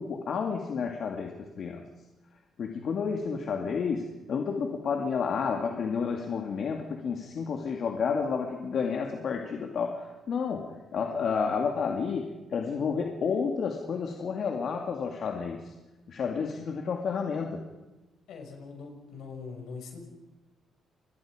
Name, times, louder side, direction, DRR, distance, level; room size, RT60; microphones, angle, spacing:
voice 1, 0.0-1.8 2.6-15.6 16.1-17.7, left 5 dB, 60° left, 2 dB, 2.3 m, -31 dB
voice 2, 18.3-20.0, left 4 dB, 80° left, 3 dB, 6.1 m, -42 dB
28.0 x 21.5 x 5.1 m, 1.1 s
cardioid pair, 90°, 0 cm